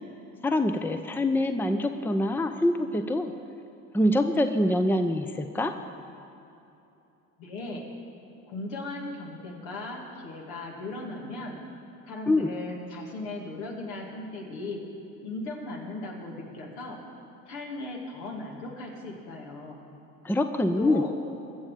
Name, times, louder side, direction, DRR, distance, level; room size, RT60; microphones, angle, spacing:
voice 1, 0.4-3.3 3.9-5.7 12.3-12.5 20.2-21.0, left 1 dB, 5° left, 8 dB, 0.7 m, -25 dB
voice 2, 7.4-7.8 8.5-11.6 12.1-14.8 15.2-17.0 17.5-19.8 20.8-21.1, left 2 dB, 75° left, -1 dB, 2.5 m, -37 dB
21.5 x 7.3 x 5.1 m, 2.8 s
hypercardioid pair, 70°, 40 cm